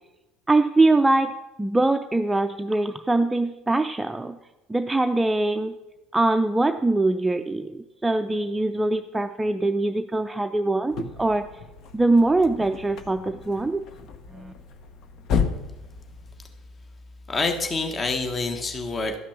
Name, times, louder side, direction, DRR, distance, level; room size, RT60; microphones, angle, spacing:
voice 1, 0.5-1.3 1.6-4.4 4.7-5.7 6.1-11.5 11.9-13.8 14.3-14.5, right 2 dB, 10° right, 7 dB, 0.5 m, -22 dB
sound 1, 10.9-16.7, left 6 dB, 50° left, 0.9 m, -33 dB
voice 2, 17.3-19.2, left 3 dB, 30° left, 5 dB, 1.4 m, -27 dB
12.5 x 5.9 x 5.8 m, 1.0 s
figure-of-eight pair, 65°, 0 cm